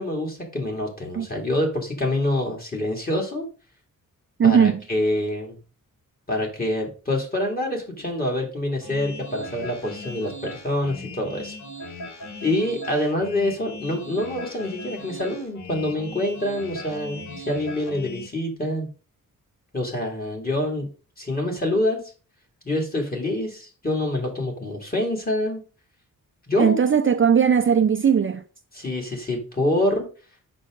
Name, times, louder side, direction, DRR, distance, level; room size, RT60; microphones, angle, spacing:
voice 1, 0.0-3.4 4.4-5.6 6.3-11.6 12.4-18.9 19.7-20.9 21.2-22.0 22.6-25.6 26.5-26.8 28.7-30.1, left 1 dB, 25° left, 2.8 m, -26 dB
voice 2, 4.4-4.8 26.6-28.4, right 7 dB, 35° right, 0.5 m, -18 dB
sound 1, 8.8-18.3, left 1 dB, 55° left, 1.6 m, -38 dB
7.5 x 6.3 x 3.9 m
wide cardioid pair, 120°, 34 cm